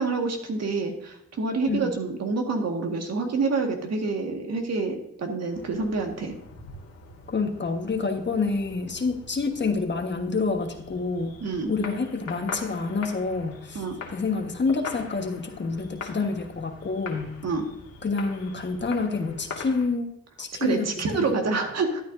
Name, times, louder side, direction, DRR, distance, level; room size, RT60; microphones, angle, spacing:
voice 1, 0.0-6.3 11.4-11.7 13.8-14.0 17.4-17.7 20.6-22.0, right 4 dB, 60° right, 3 dB, 1.8 m, -27 dB
sound 1, 5.5-19.9, left 4 dB, 60° left, 2.1 m, -42 dB
voice 2, 7.3-11.3 11.7-13.8 14.1-17.3 18.0-20.1 20.4-21.3, left 4 dB, 40° left, 5 dB, 1.4 m, -28 dB
13.0 x 8.9 x 2.7 m, 0.79 s
cardioid pair, 70°, 29 cm